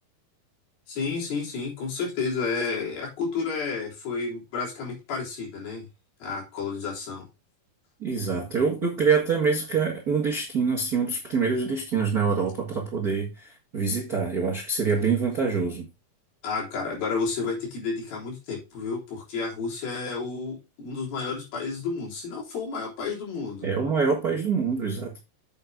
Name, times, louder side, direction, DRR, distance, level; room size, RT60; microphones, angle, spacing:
voice 1, 0.9-5.9 6.2-7.3 16.4-23.7, left 4 dB, 70° left, 5.6 m, -31 dB
voice 2, 8.0-15.9 23.6-25.2, right 5 dB, 40° right, 1.3 m, -25 dB
8.0 x 7.5 x 3.6 m
omnidirectional pair, 4.4 m